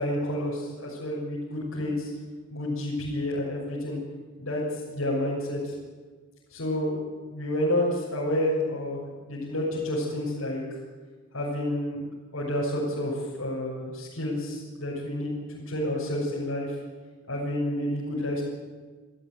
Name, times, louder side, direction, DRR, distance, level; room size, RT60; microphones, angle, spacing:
voice 1, 0.0-2.1 2.5-4.0 4.4-4.6 4.9-5.7 6.5-7.0 7.3-9.0 9.3-10.6 11.3-12.0 12.3-15.3 15.7-16.7 17.3-18.4, left 1 dB, 85° left, -6 dB, 6.6 m, -29 dB
27.5 x 14.0 x 9.4 m, 1.4 s
head